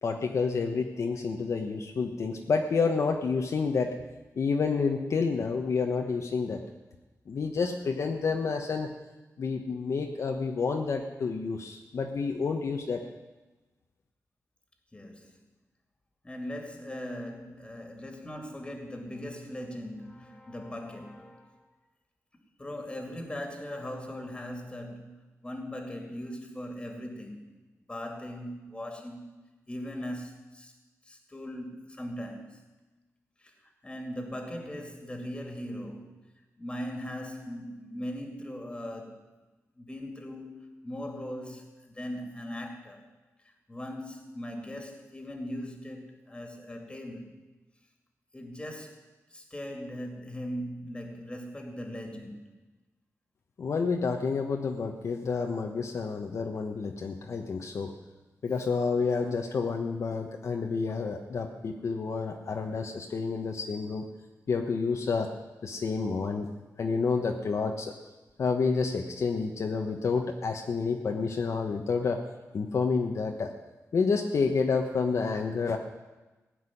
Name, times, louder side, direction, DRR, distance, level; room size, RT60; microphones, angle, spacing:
voice 1, 0.0-3.9 4.4-6.6 7.3-8.9 9.4-13.0 53.6-57.9 58.4-64.1 64.5-65.3 65.6-66.5 66.8-67.9 68.4-72.2 72.5-73.5 73.9-75.8, left 4 dB, 60° left, 2 dB, 1.1 m, -29 dB
voice 2, 14.9-15.3 16.2-21.7 22.6-25.1 25.4-27.4 27.9-29.3 29.7-30.7 31.0-32.6 33.4-33.5 33.8-36.1 36.6-39.3 39.8-43.1 43.4-47.4 48.3-49.0 49.3-52.4, equal, 20° left, 3 dB, 2.5 m, -39 dB
16.0 x 6.0 x 9.9 m, 1.1 s
wide cardioid pair, 120°, 6 cm